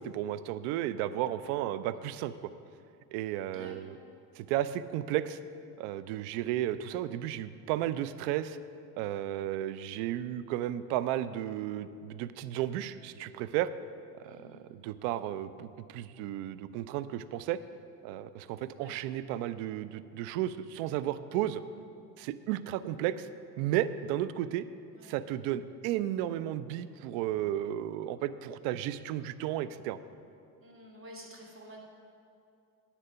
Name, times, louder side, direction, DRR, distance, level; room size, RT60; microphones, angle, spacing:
voice 1, 0.0-2.3 3.1-3.9 4.4-5.4 5.8-8.6 9.0-13.7 14.2-17.6 18.0-21.6 22.2-23.3 23.6-24.6 25.0-30.0, right 12 dB, 70° right, 14 dB, 0.6 m, -33 dB
voice 2, 3.4-4.0 14.2-14.6 18.8-19.0 24.9-25.2 30.6-31.8, equal, 25° right, 0 dB, 2.6 m, -51 dB
10.0 x 7.4 x 5.6 m, 2.5 s
hypercardioid pair, 70°, 49 cm